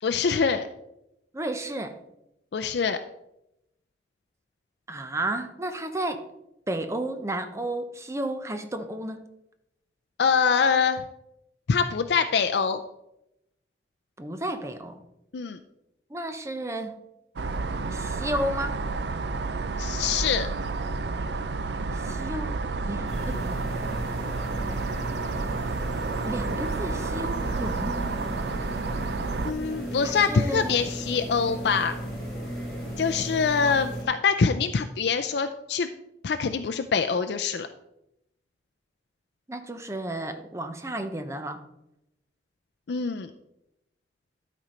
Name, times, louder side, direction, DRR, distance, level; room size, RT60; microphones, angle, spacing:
voice 1, 0.0-0.7 2.5-3.0 10.2-11.0 11.7-12.8 15.3-15.6 19.8-20.5 29.4-31.9 33.0-35.9 36.2-37.7 42.9-43.3, left 5 dB, 75° left, 8 dB, 0.4 m, -24 dB
voice 2, 1.3-2.0 4.9-6.2 6.7-9.2 14.2-15.0 16.1-17.0 17.9-18.8 21.9-22.6 22.9-23.6 26.2-28.0 30.0-30.8 33.7-33.8 39.5-41.6, right 1 dB, 15° right, 8 dB, 0.7 m, -32 dB
sound 1, 17.4-29.5, right 3 dB, 75° right, 0.5 m, -30 dB
sound 2, 23.1-34.0, equal, ahead, 3.1 m, -36 dB
12.0 x 4.3 x 5.1 m, 0.86 s
head